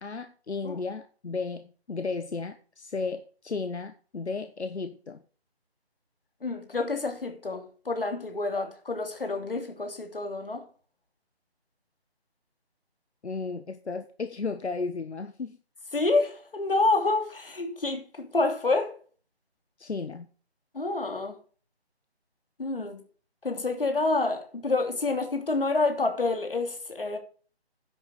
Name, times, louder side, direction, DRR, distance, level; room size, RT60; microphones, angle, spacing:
voice 1, 0.0-5.2 13.2-15.6 19.8-20.3, left 4 dB, 85° left, 1.3 m, -34 dB
voice 2, 6.4-10.6 15.9-19.0 20.7-21.4 22.6-23.0 23.4-27.2, left 3 dB, 55° left, 3.2 m, -28 dB
11.0 x 7.0 x 6.4 m
figure-of-eight pair, 180°, 33 cm